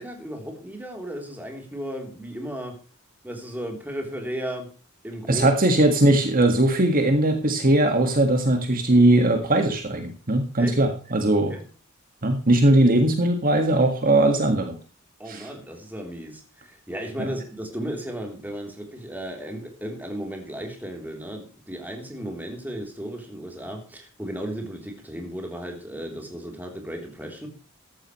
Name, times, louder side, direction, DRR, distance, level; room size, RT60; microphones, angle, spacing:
voice 1, 0.0-2.8 3.2-4.7 5.0-5.5 10.6-10.8 11.3-11.7 15.2-27.5, equal, 10° right, 2 dB, 3.3 m, -35 dB
voice 2, 5.3-11.5 12.2-14.8 15.3-15.5 17.2-17.3, right 1 dB, 45° right, 5 dB, 1.8 m, -20 dB
14.0 x 12.5 x 3.1 m, 0.35 s
head